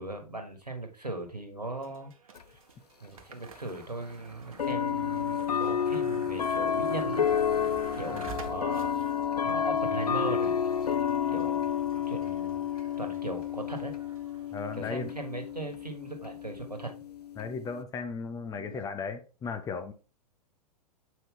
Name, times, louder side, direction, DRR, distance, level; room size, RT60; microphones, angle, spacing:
voice 1, 0.0-2.1 2.5-2.6 3.0-7.2 8.0-9.0 9.4-10.5 11.3-11.7 12.1-12.6 13.0-13.9 14.8-16.9, right 2 dB, 85° right, 1.7 m, -38 dB
sound 1, 1.8-18.9, right 6 dB, 60° right, 1.2 m, -50 dB
sound 2, 2.4-2.5 3.6-3.7 4.6-17.8, left 8 dB, 80° left, 0.4 m, -30 dB
voice 2, 14.5-15.1 17.4-19.9, left 5 dB, 15° left, 0.8 m, -36 dB
7.6 x 5.3 x 3.7 m
figure-of-eight pair, 100°, 20 cm